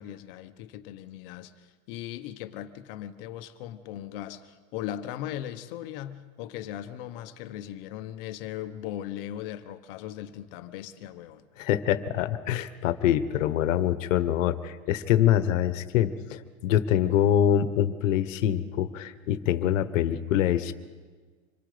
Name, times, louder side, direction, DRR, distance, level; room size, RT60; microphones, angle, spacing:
voice 1, 0.0-11.4, left 12 dB, 40° left, 1.1 m, -38 dB
voice 2, 11.6-20.7, left 11 dB, 65° left, 1.2 m, -25 dB
26.0 x 22.5 x 5.1 m
supercardioid pair, 170°, 41 cm